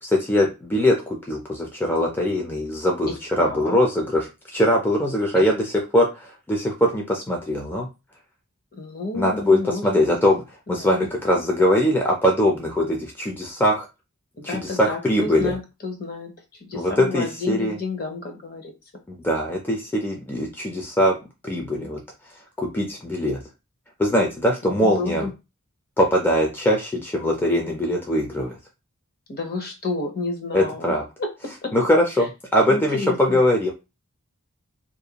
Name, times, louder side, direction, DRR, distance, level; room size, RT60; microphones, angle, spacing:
voice 1, 0.0-7.9 9.1-10.4 10.7-13.9 14.4-15.6 16.7-17.8 19.1-21.2 21.4-22.0 22.6-23.4 24.0-25.3 26.0-28.6 30.5-31.0 31.7-33.7, left 1 dB, 10° left, 0 dB, 0.4 m, -21 dB
voice 2, 3.1-3.8 5.3-5.4 8.7-10.2 10.8-11.1 14.4-16.3 16.6-18.7 24.6-25.3 29.3-31.7 32.7-33.4, left 3 dB, 45° left, 4 dB, 0.7 m, -31 dB
2.5 x 2.2 x 2.8 m, 0.26 s
head